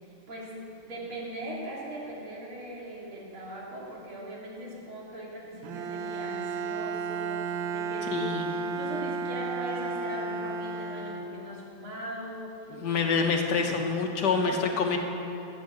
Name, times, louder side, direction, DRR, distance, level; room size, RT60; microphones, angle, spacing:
voice 1, 0.3-8.3 8.6-13.5 14.3-15.0, right 1 dB, 90° right, -5 dB, 3.7 m, -40 dB
Bowed string instrument, 5.6-11.8, right 4 dB, 70° right, 1.5 m, -33 dB
voice 2, 8.1-8.5 12.7-15.0, left 5 dB, 60° left, 3 dB, 1.6 m, -26 dB
13.5 x 8.5 x 8.0 m, 2.9 s
omnidirectional pair, 2.3 m